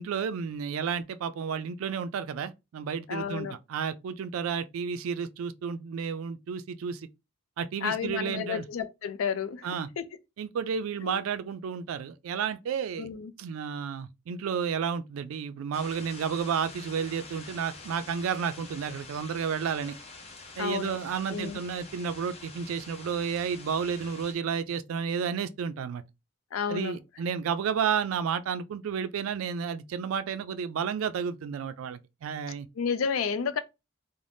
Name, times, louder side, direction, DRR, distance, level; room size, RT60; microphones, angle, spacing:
voice 1, 0.0-7.1 7.6-8.6 9.6-9.9 10.4-13.1 13.4-20.0 20.6-26.0 26.7-32.7, right 7 dB, 85° right, 0.3 m, -31 dB
voice 2, 3.1-3.6 7.8-9.7 10.0-10.1 11.0-11.2 13.0-13.3 20.6-21.0 21.3-21.6 26.5-27.0 32.8-33.6, left 6 dB, 85° left, 0.4 m, -31 dB
sound 1, 15.7-24.3, left 3 dB, 30° left, 0.5 m, -47 dB
2.6 x 2.0 x 3.3 m
head